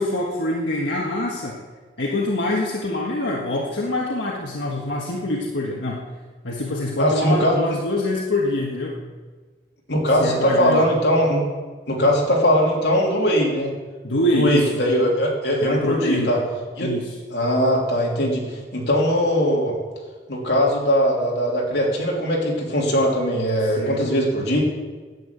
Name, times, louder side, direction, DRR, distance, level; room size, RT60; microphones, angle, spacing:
voice 1, 0.0-1.6 2.0-6.0 6.4-9.0 10.2-10.8 14.0-14.7 15.6-16.3 16.8-17.1 23.8-24.0, left 1 dB, 85° left, -2 dB, 1.6 m, -24 dB
voice 2, 7.0-7.6 9.9-11.4 11.9-13.7 14.3-16.4 16.8-16.9 17.3-19.8 20.3-24.6, equal, 70° left, -2 dB, 3.2 m, -20 dB
11.0 x 8.7 x 8.6 m, 1.4 s
head